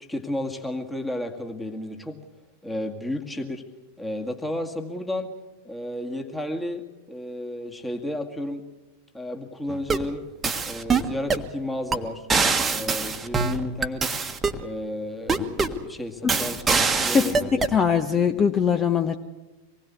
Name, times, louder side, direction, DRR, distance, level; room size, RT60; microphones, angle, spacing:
voice 1, 0.0-2.2 2.6-3.6 4.0-5.3 5.6-8.6 9.1-10.2 10.6-12.3 12.7-14.1 14.6-17.5, left 1 dB, 5° left, 3 dB, 2.1 m, -32 dB
sound 1, 9.7-10.1 10.4-11.5 11.9-12.0 12.3-14.6 15.3-15.8 16.3-17.8, right 4 dB, 15° right, 1.5 m, -24 dB
voice 2, 17.1-19.2, left 7 dB, 20° left, 8 dB, 1.1 m, -22 dB
25.5 x 20.0 x 8.3 m, 1.1 s
figure-of-eight pair, 90°, 0 cm